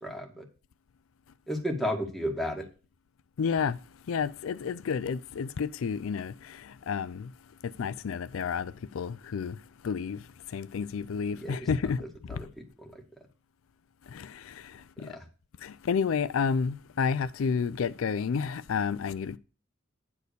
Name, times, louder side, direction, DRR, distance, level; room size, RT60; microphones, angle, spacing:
voice 1, 0.0-0.4 1.5-2.7 11.3-11.7 12.0-13.0 15.0-15.3, equal, ahead, 1.9 m, -34 dB
voice 2, 3.4-3.8 4.1-6.3 6.9-7.3 7.8-9.6 9.8-10.2 10.5-12.0 14.1-14.3 15.0-15.2 15.6-19.4, left 6 dB, 70° left, 0.4 m, -30 dB
9.6 x 4.3 x 6.7 m
head